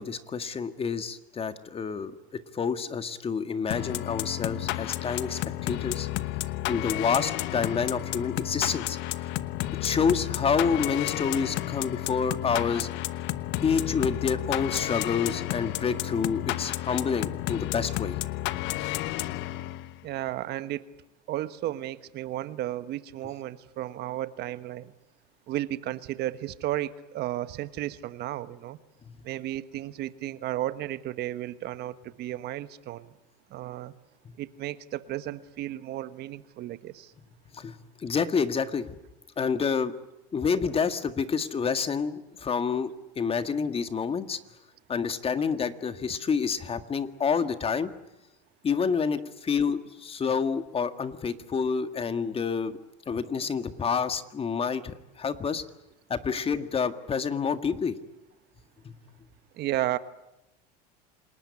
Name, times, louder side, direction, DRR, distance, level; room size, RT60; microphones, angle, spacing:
voice 1, 0.0-6.1 6.7-9.3 9.8-12.9 13.6-18.2 29.1-29.2 37.5-39.0 39.4-39.9 40.3-42.9 43.2-44.4 44.9-47.9 48.6-52.8 53.1-55.6 56.1-58.0 58.8-58.9, left 6 dB, 30° left, 10 dB, 1.8 m, -28 dB
sound 1, 3.7-20.0, left 16 dB, 65° left, 1.1 m, -32 dB
voice 2, 20.0-20.8 21.3-24.9 25.5-28.8 29.2-33.1 33.5-33.9 34.4-37.1 59.6-60.0, right 14 dB, 55° right, 13 dB, 1.4 m, -33 dB
28.0 x 20.0 x 9.7 m, 0.91 s
supercardioid pair, 100°, 21 cm